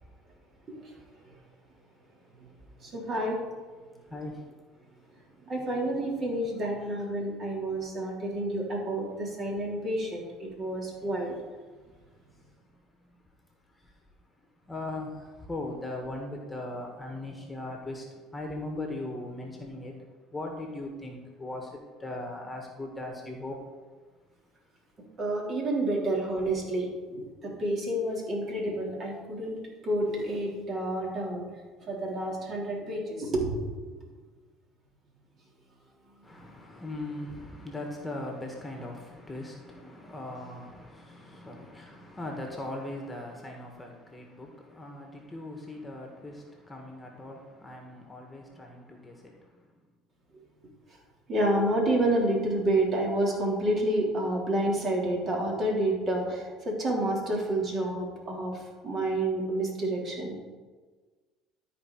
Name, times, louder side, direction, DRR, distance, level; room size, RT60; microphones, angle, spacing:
voice 1, 2.8-3.5 5.5-11.3 25.2-31.5 31.8-33.9 36.4-36.5 51.3-60.4, right 1 dB, 40° right, 3.2 m, -29 dB
voice 2, 4.0-4.7 5.2-5.3 11.9-13.1 13.7-14.0 14.4-20.0 20.3-23.7 36.2-49.7, left 2 dB, 15° left, 1.7 m, -40 dB
13.0 x 4.8 x 4.7 m
supercardioid pair, 85°, 0 cm